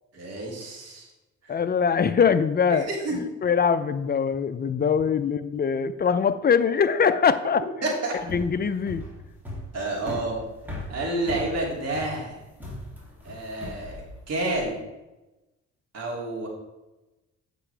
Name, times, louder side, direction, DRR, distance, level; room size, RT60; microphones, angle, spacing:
voice 1, 0.1-1.1 1.4-1.6 2.7-3.2 7.8-8.1 9.7-10.4 10.9-12.4 13.2-14.8 15.9-16.5, right 2 dB, 55° right, -2 dB, 2.6 m, -29 dB
voice 2, 1.5-2.9 3.4-7.6 8.3-9.0, left 6 dB, 35° left, 12 dB, 0.5 m, -22 dB
sound 1, 8.2-14.7, left 1 dB, 5° right, 2.6 m, -38 dB
8.2 x 5.9 x 3.3 m, 1.0 s
cardioid pair, 90°, 30 cm